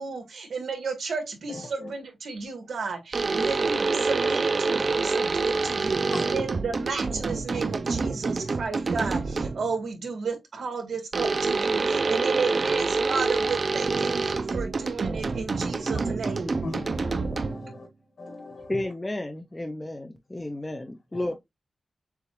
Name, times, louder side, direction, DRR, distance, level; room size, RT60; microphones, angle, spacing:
voice 1, 0.0-16.6, right 4 dB, 75° right, 1.6 m, -33 dB
voice 2, 1.5-1.9 6.1-6.4 15.9-16.1 16.6-17.9 18.2-18.9 21.1-21.3, left 2 dB, 75° left, 2.5 m, -38 dB
sound 1, 3.1-9.7 11.1-17.8, right 4 dB, 45° right, 0.4 m, -27 dB
voice 3, 18.7-21.3, left 1 dB, 15° left, 0.5 m, -32 dB
6.7 x 2.3 x 3.0 m
wide cardioid pair, 115°, 0 cm